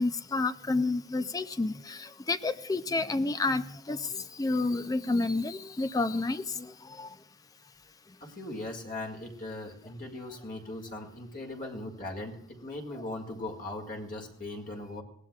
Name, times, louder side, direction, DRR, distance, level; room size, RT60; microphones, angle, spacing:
voice 1, 0.0-4.1 4.3-6.7 7.0-7.1, left 3 dB, 20° left, 12 dB, 0.4 m, -30 dB
voice 2, 8.2-15.0, left 2 dB, 45° left, 2 dB, 2.0 m, -39 dB
20.5 x 17.0 x 2.4 m, 0.79 s
head